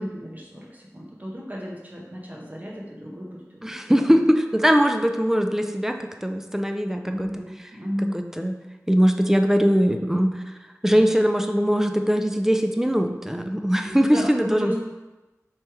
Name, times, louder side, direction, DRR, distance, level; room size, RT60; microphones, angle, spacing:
voice 1, 0.0-4.2 7.0-8.3 13.8-14.8, equal, 30° right, -3 dB, 0.9 m, -34 dB
voice 2, 3.6-7.4 8.1-8.5 8.9-10.4 10.8-14.8, equal, 5° right, 5 dB, 0.3 m, -21 dB
3.3 x 3.0 x 4.6 m, 1.1 s
wide cardioid pair, 60°, 6 cm